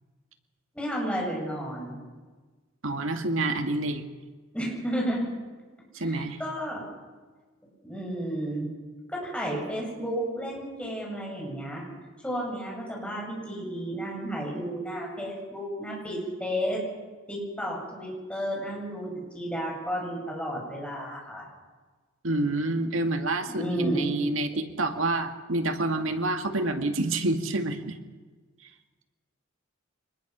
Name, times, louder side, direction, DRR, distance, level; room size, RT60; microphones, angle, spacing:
voice 1, 0.7-2.0 4.5-5.2 6.0-6.8 7.8-8.7 9.1-11.8 12.2-16.8 17.3-19.1 19.3-21.4 23.5-24.1, equal, 5° left, -2 dB, 7.6 m, -32 dB
voice 2, 2.8-4.0 5.9-6.4 22.2-28.0, right 2 dB, 90° right, 6 dB, 2.0 m, -28 dB
25.0 x 20.5 x 6.2 m, 1.3 s
head